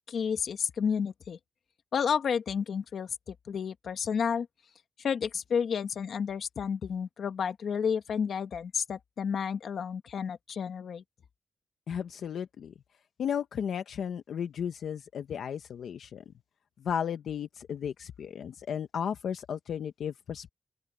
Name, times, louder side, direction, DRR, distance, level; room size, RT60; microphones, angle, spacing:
voice 1, 0.1-1.4 1.9-4.5 5.0-11.0, left 7 dB, 65° left, 1.4 m, -31 dB
voice 2, 11.9-12.7 13.2-16.2 16.8-20.5, left 8 dB, 90° left, 0.9 m, -34 dB
open air
wide cardioid pair, 175°, 0 cm